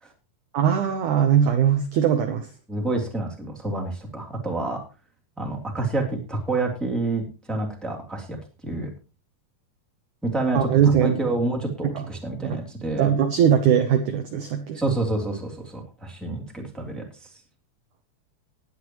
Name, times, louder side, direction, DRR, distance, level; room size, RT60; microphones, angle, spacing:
voice 1, 0.5-2.5 10.5-11.1 12.0-12.1 12.4-12.6 13.0-14.8, right 8 dB, 75° right, 7 dB, 1.8 m, -20 dB
voice 2, 2.7-4.8 5.4-8.4 8.6-8.9 10.2-13.1 14.7-17.3, right 2 dB, ahead, 0 dB, 2.3 m, -28 dB
19.5 x 9.7 x 3.1 m, 0.33 s
omnidirectional pair, 4.8 m